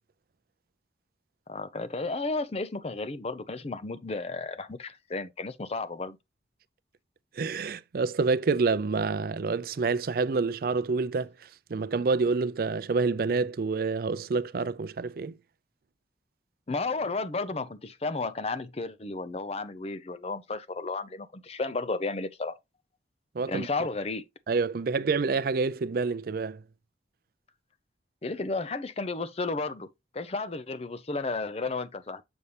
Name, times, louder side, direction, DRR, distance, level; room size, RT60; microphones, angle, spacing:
voice 1, 1.5-6.2 16.7-22.6 23.5-24.2 28.2-32.2, left 3 dB, 35° left, 0.6 m, -33 dB
voice 2, 7.4-15.4 23.3-23.7 24.5-26.6, right 4 dB, 55° right, 0.4 m, -28 dB
7.0 x 5.4 x 3.2 m
head